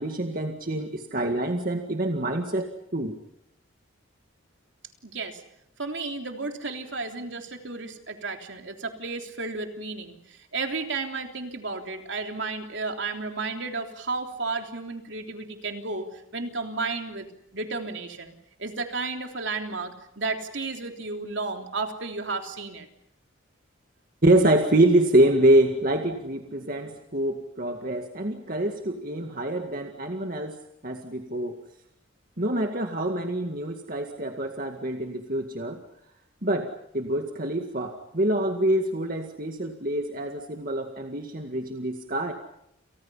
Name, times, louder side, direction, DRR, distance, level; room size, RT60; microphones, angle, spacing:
voice 1, 0.0-3.1 24.2-30.6 30.8-31.6 32.4-35.8 36.4-42.3, right 1 dB, 45° right, 4 dB, 2.1 m, -25 dB
voice 2, 5.0-5.4 5.8-17.3 17.5-18.3 18.6-22.9, right 3 dB, 65° right, 4 dB, 3.4 m, -33 dB
29.5 x 29.5 x 5.7 m, 0.77 s
head